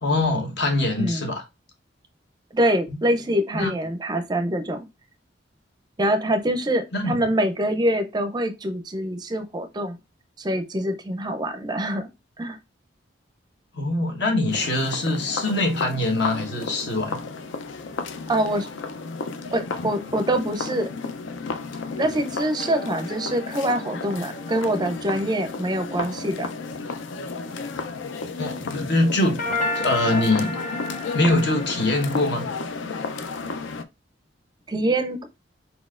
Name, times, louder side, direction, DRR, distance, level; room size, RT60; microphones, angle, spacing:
voice 1, 0.0-1.4 3.5-3.7 6.9-7.2 13.7-17.2 28.3-29.4 29.7-30.6 31.1-32.5, left 2 dB, 60° left, 1.1 m, -23 dB
voice 2, 2.5-4.9 6.0-10.0 10.4-12.1 12.4-12.6 18.3-18.7 19.5-20.9 22.0-26.5 34.7-35.3, right 1 dB, 20° right, 0.4 m, -25 dB
sound 1, 14.5-33.8, left 4 dB, 80° left, 0.5 m, -33 dB
sound 2, 22.6-26.1 29.4-32.2, left 2 dB, 45° left, 1.6 m, -33 dB
4.6 x 4.1 x 2.4 m
head